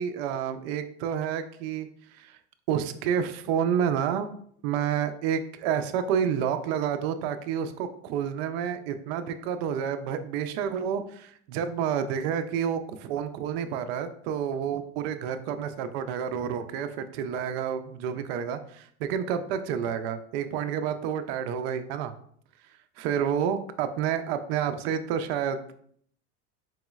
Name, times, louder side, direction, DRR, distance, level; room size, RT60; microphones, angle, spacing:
voice 1, 0.0-2.4 2.7-4.3 4.6-22.1 23.0-25.8, right 8 dB, 65° right, 10 dB, 0.4 m, -29 dB
4.7 x 3.0 x 2.3 m, 0.62 s
cardioid pair, 175°, 33 cm